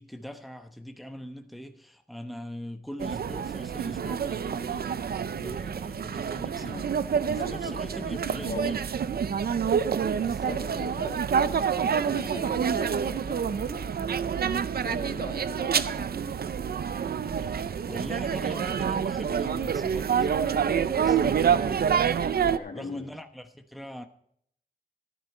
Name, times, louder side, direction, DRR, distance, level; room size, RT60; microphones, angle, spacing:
voice 1, 0.0-5.0 5.3-6.9 7.3-8.9 10.2-10.6 11.0-11.2 17.2-21.9 22.7-24.1, equal, ahead, 1.0 m, -42 dB
sound 1, 3.0-22.6, right 7 dB, 90° right, 0.5 m, -27 dB
voice 2, 7.3-8.8 10.3-14.0 14.5-16.4 22.2-23.1, left 3 dB, 85° left, 2.4 m, -41 dB
12.5 x 11.0 x 4.3 m
wide cardioid pair, 75°, 15 cm